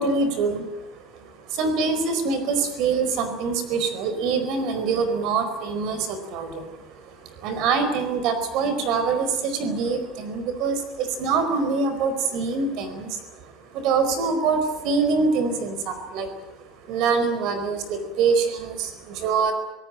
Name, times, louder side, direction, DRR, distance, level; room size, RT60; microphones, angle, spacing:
voice 1, 0.0-16.3 16.6-19.5, right 4 dB, 60° right, 10 dB, 4.6 m, -25 dB
25.0 x 18.5 x 9.0 m, 0.98 s
cardioid pair, 150°, 0 cm